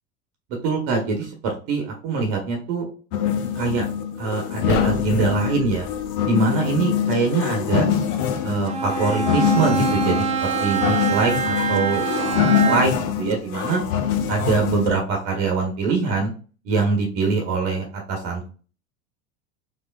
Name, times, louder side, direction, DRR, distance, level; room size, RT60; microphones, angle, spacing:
voice 1, 0.5-2.9 3.5-3.9 4.2-5.9 6.3-7.9 8.4-13.8 14.3-16.3 16.6-18.5, right 4 dB, 60° right, 2 dB, 1.1 m, -24 dB
sound 1, 3.1-15.0, left 8 dB, 50° left, 0.7 m, -24 dB
sound 2, 4.7-6.2, left 4 dB, 85° left, 0.8 m, -31 dB
Bowed string instrument, 8.7-13.1, right 7 dB, 15° right, 0.7 m, -25 dB
3.6 x 3.2 x 2.3 m, 0.37 s
hypercardioid pair, 75°, 42 cm